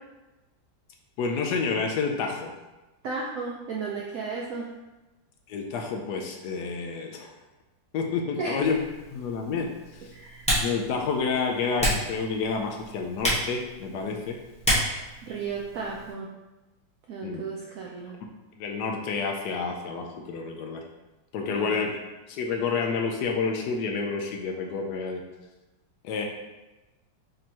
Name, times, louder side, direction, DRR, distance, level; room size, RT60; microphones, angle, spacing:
voice 1, 1.2-2.5 5.5-7.3 7.9-8.8 9.1-9.7 10.6-14.4 17.2-17.4 18.6-20.8 21.3-21.9 22.3-25.2 26.0-26.2, left 5 dB, 75° left, 2 dB, 1.0 m, -29 dB
voice 2, 3.0-4.7 8.4-8.7 10.1-10.5 15.3-16.3 17.1-18.2 21.5-21.9, right 4 dB, 90° right, -2 dB, 0.7 m, -34 dB
Typing, 8.6-16.1, equal, 5° left, 0.6 m, -31 dB
5.2 x 2.9 x 2.8 m, 1.1 s
omnidirectional pair, 2.0 m